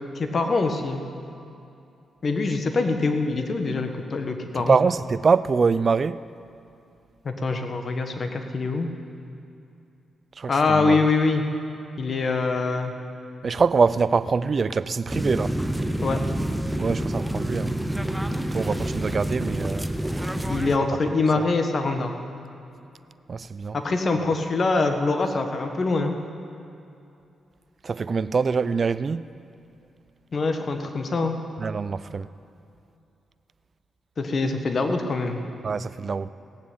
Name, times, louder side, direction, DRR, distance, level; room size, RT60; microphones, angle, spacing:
voice 1, 0.1-1.0 2.2-4.8 7.2-8.9 10.5-11.4 12.0-12.9 16.0-16.2 20.5-22.1 23.7-26.2 30.3-31.4 34.2-35.4, left 3 dB, 50° left, 1.4 m, -24 dB
voice 2, 4.6-6.2 10.4-11.0 13.4-15.6 16.8-17.8 18.5-19.9 21.4-21.5 23.3-23.8 27.8-29.2 31.6-32.3 35.6-36.3, right 5 dB, 50° right, 0.4 m, -24 dB
sound 1, 15.1-20.8, right 1 dB, 5° right, 0.8 m, -27 dB
17.5 x 7.4 x 8.6 m
cardioid pair, 60°, 0 cm